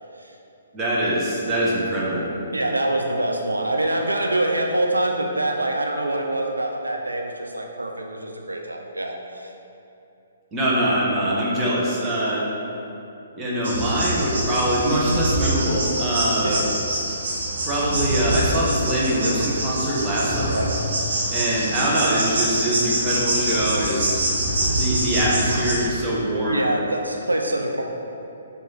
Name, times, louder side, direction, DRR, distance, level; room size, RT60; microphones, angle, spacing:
voice 1, 0.7-2.3 10.5-12.5 13.3-16.6 17.6-20.5 21.3-24.2 24.6-26.7, right 1 dB, 15° right, -6 dB, 0.9 m, -23 dB
voice 2, 2.5-9.5 16.4-16.6 20.5-20.7 26.4-27.8, right 1 dB, 85° right, 1 dB, 0.4 m, -25 dB
sound 1, 13.6-25.8, right 1 dB, 60° right, 0.9 m, -25 dB
4.6 x 2.6 x 4.1 m, 2.8 s
figure-of-eight pair, 130°, 0 cm